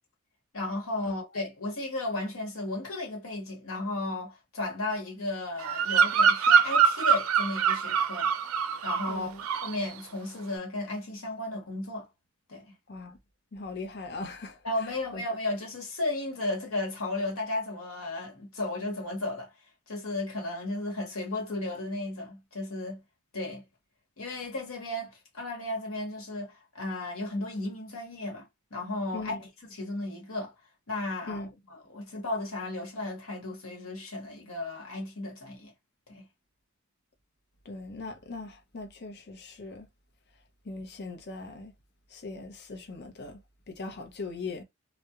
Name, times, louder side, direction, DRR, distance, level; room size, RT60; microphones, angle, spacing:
voice 1, 0.5-8.3 8.8-9.3 9.6-12.1 12.5-12.7 14.6-19.5 19.9-23.0 23.3-23.6 24.2-29.4 29.7-30.5 30.9-31.4 31.7-35.7 36.1-36.3, left 2 dB, 75° left, 1.1 m, -34 dB
Bird vocalization bird call bird song, 5.6-9.1 9.4-9.8, right 7 dB, 80° right, 0.4 m, -24 dB
voice 2, 9.1-9.4 12.9-13.2 13.5-14.6 15.1-15.2 29.1-29.4 31.3-31.5 37.7-39.9 40.6-41.7 42.1-43.4 43.7-44.6, left 3 dB, 50° left, 0.6 m, -40 dB
2.3 x 2.1 x 2.8 m
head